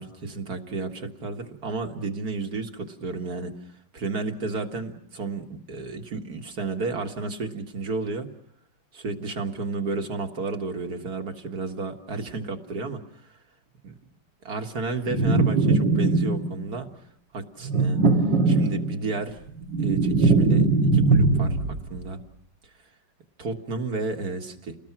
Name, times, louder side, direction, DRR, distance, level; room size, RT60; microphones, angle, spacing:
voice 1, 0.0-3.6 3.9-8.3 8.9-13.0 13.8-13.9 14.4-16.9 17.3-18.1 18.5-19.4 19.8-20.7 20.9-22.2 23.4-24.8, right 3 dB, 55° right, 4 dB, 2.2 m, -32 dB
sound 1, 15.1-16.6 17.6-19.1 19.5-21.9, right 3 dB, 80° right, 2.3 m, -21 dB
30.0 x 20.5 x 6.0 m, 0.69 s
omnidirectional pair, 1.9 m